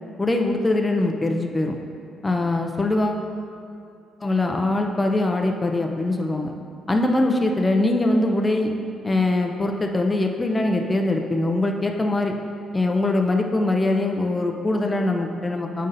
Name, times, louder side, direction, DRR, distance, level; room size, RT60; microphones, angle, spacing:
voice 1, 0.2-1.8 2.2-3.2 4.2-6.5 6.9-8.7 9.0-12.4 12.7-15.9, left 2 dB, 20° left, 2 dB, 0.6 m, -22 dB
7.6 x 5.3 x 2.6 m, 2.4 s
supercardioid pair, 60°, 0 cm